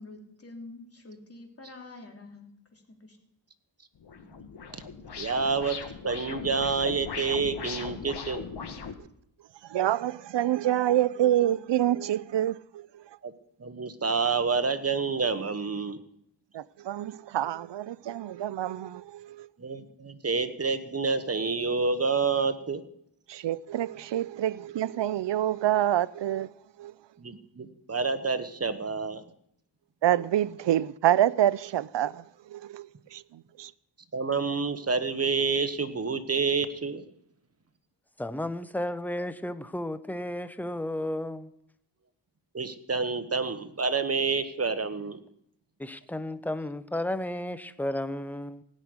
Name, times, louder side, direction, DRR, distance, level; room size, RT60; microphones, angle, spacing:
voice 1, 0.0-3.2, left 2 dB, 30° left, 3.1 m, -47 dB
sound 1, 4.0-8.9, left 6 dB, 60° left, 1.4 m, -39 dB
voice 2, 5.2-5.8 6.0-8.4 13.2-13.3 13.6-16.0 19.6-22.8 27.2-29.2 34.1-37.0 42.5-45.2, right 4 dB, 35° right, 1.2 m, -28 dB
voice 3, 9.7-13.0 16.5-19.5 23.3-26.5 26.8-26.9 30.0-33.7, right 12 dB, 70° right, 0.6 m, -27 dB
voice 4, 38.2-41.5 45.8-48.6, left 1 dB, 5° left, 0.7 m, -33 dB
16.5 x 6.4 x 9.6 m
wide cardioid pair, 90°, 44 cm